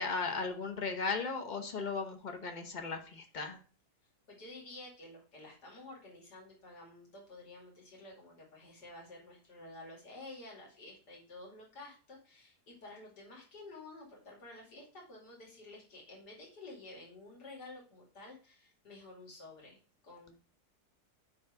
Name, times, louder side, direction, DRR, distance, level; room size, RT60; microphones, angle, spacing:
voice 1, 0.0-3.6, left 4 dB, 30° left, 5 dB, 1.1 m, -36 dB
voice 2, 4.3-19.8 20.0-20.4, left 2 dB, 90° left, -2 dB, 3.1 m, -51 dB
9.8 x 3.3 x 4.8 m, 0.38 s
omnidirectional pair, 1.7 m